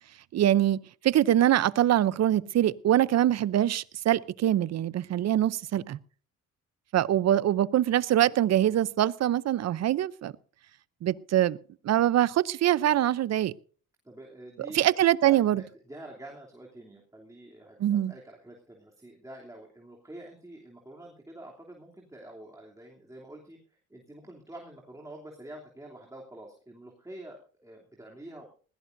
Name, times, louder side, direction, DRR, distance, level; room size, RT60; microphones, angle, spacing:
voice 1, 0.3-0.8 1.0-6.0 6.9-10.3 11.0-11.6 11.8-13.5 14.7-15.6 17.8-18.1, right 12 dB, 60° right, 0.7 m, -24 dB
voice 2, 14.0-14.9 15.2-28.5, right 1 dB, 10° right, 3.0 m, -47 dB
20.5 x 16.5 x 2.6 m
cardioid pair, 90°, 30 cm